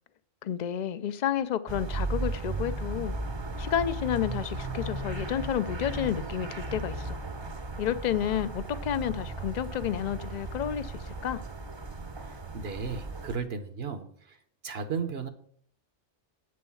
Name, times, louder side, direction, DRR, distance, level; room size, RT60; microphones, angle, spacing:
voice 1, 0.4-3.1 3.6-7.2 7.8-11.4, left 10 dB, 50° left, 0.6 m, -30 dB
sound 1, 1.7-13.4, right 2 dB, 30° right, 0.7 m, -36 dB
voice 2, 12.2-14.4 14.6-15.3, right 5 dB, 65° right, 1.1 m, -35 dB
8.1 x 6.3 x 7.0 m
omnidirectional pair, 1.2 m